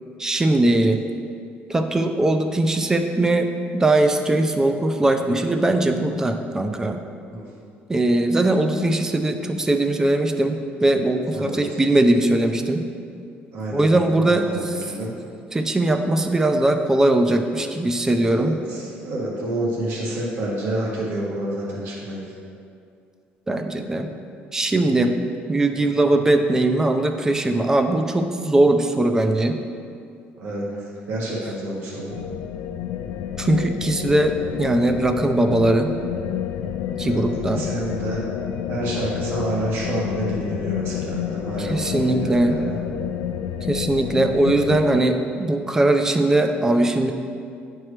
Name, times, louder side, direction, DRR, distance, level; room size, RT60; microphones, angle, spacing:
voice 1, 0.2-1.0 1.7-7.0 7.9-12.9 13.7-14.8 15.5-18.6 23.5-24.1 24.5-25.2 25.5-29.6 33.4-35.9 37.0-37.6 41.6-42.6 43.7-47.1, right 2 dB, 15° right, 6 dB, 0.4 m, -20 dB
voice 2, 13.5-15.1 18.1-22.3 30.4-32.1 37.0-38.2 38.7-42.8, right 1 dB, 65° right, -4 dB, 1.5 m, -29 dB
sound 1, 32.1-45.0, left 9 dB, 90° left, 0.3 m, -29 dB
9.6 x 4.5 x 3.2 m, 2.4 s
cardioid pair, 135°, 4 cm